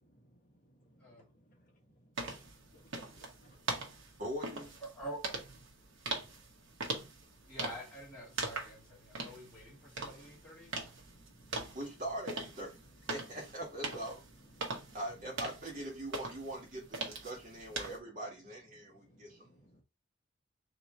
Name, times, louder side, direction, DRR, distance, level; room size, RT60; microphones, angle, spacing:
sound 1, 2.2-18.0, right 3 dB, 80° right, 1.1 m, -42 dB
voice 1, 2.7-3.6 11.1-11.8 14.6-15.0 19.5-19.8, right 1 dB, 40° left, 1.3 m, -61 dB
voice 2, 4.2-4.7 11.7-12.7 13.0-14.2 14.9-19.8, right 1 dB, 40° right, 1.6 m, -42 dB
voice 3, 4.8-5.2 7.5-10.7, equal, 5° left, 2.4 m, -47 dB
3.7 x 3.0 x 4.2 m
head